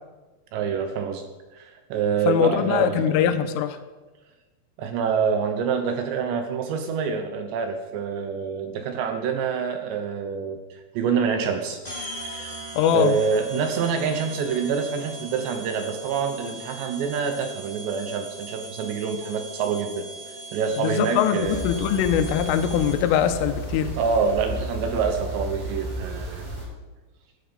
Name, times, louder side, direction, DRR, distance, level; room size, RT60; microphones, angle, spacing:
voice 1, 0.5-1.2 1.5-3.2 4.8-11.8 12.3-12.6 12.9-20.1 20.5-21.6 24.0-26.5, right 6 dB, 75° right, 6 dB, 2.8 m, -26 dB
voice 2, 2.3-3.8 12.8-13.2 20.8-23.9, left 9 dB, 80° left, 9 dB, 3.3 m, -22 dB
sound 1, 11.8-23.2, right 3 dB, 15° left, 1.7 m, -39 dB
sound 2, 21.4-26.6, right 1 dB, 55° right, 7.8 m, -33 dB
17.0 x 11.0 x 5.3 m, 1.2 s
omnidirectional pair, 5.9 m